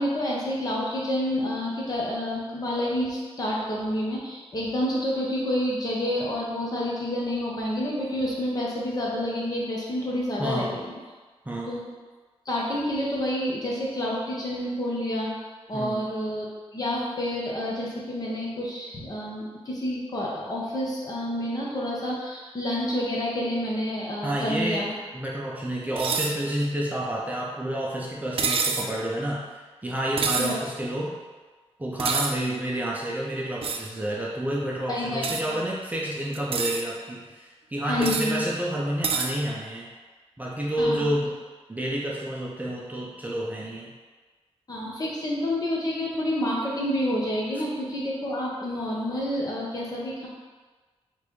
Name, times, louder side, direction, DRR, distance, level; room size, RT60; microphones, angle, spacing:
voice 1, 0.0-11.0 11.6-11.8 12.4-15.3 15.7-16.5 16.7-24.9 28.8-28.9 30.4-30.6 34.9-35.6 37.9-38.4 40.8-41.1 44.7-50.3, left 1 dB, 35° left, -5 dB, 1.0 m, -29 dB
voice 2, 10.4-10.8 11.5-11.8 15.7-16.0 24.2-31.2 31.8-39.9 40.4-41.3 41.7-43.9, right 1 dB, 15° right, -4 dB, 0.6 m, -29 dB
sound 1, 26.0-26.3 28.4-28.9 30.2-30.6 32.0-32.3 33.6-33.9 35.2-35.4 36.3-36.8 38.0-38.3 39.0-39.3, right 5 dB, 60° right, 0.4 m, -27 dB
3.9 x 3.3 x 3.1 m, 1.4 s
cardioid pair, 95°, 11 cm